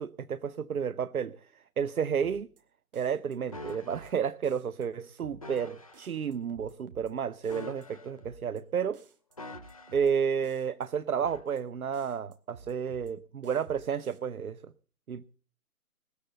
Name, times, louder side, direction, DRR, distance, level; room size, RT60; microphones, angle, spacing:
voice 1, 0.0-2.5 2.9-9.0 9.9-14.7 15.1-15.2, right 7 dB, 70° right, 15 dB, 0.8 m, -31 dB
sound 1, 2.2-2.6 2.9-4.1 4.4-4.9 5.2-5.6 5.9-7.1 7.4-7.9 8.2-8.6 8.9-10.1 10.4-10.9 11.2-11.6 11.9-13.1 13.4-14.2, right 4 dB, 35° right, 2.3 m, -53 dB
sound 2, 3.5-4.1 5.4-6.1 7.4-8.4 9.4-10.1 11.3-11.5, left 2 dB, 25° left, 0.6 m, -45 dB
20.0 x 7.0 x 7.9 m, 0.43 s
figure-of-eight pair, 155°, 45 cm